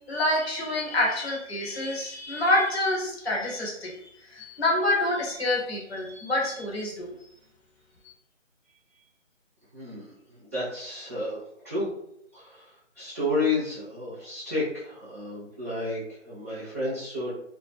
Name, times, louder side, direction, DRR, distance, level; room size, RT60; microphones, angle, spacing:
voice 1, 0.0-7.1, left 1 dB, 55° left, -3 dB, 1.1 m, -27 dB
voice 2, 9.7-11.4 11.6-11.9 12.3-12.7 13.0-16.0 16.2-17.3, left 2 dB, 10° left, -13 dB, 0.7 m, -31 dB
2.1 x 2.1 x 3.3 m, 0.74 s
figure-of-eight pair, 155°, 38 cm